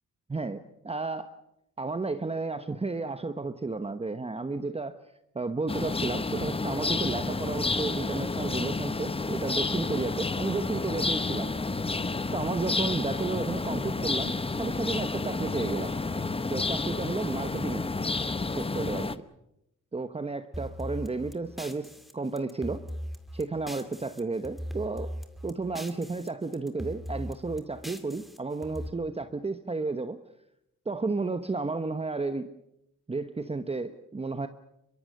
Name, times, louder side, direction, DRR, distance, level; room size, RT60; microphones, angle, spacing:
voice 1, 0.3-1.3 1.8-5.0 5.3-11.5 12.3-15.9 16.5-17.9 18.6-19.2 19.9-22.8 23.3-25.1 25.4-30.2 30.9-32.5 33.1-34.5, right 3 dB, 20° right, 9 dB, 1.0 m, -32 dB
sound 1, 5.7-19.2, left 3 dB, 15° left, 0.9 m, -30 dB
sound 2, 20.5-24.2 24.4-26.3 26.5-28.9, equal, ahead, 2.3 m, -39 dB
24.5 x 23.0 x 6.5 m, 0.83 s
cardioid pair, 95°, 32 cm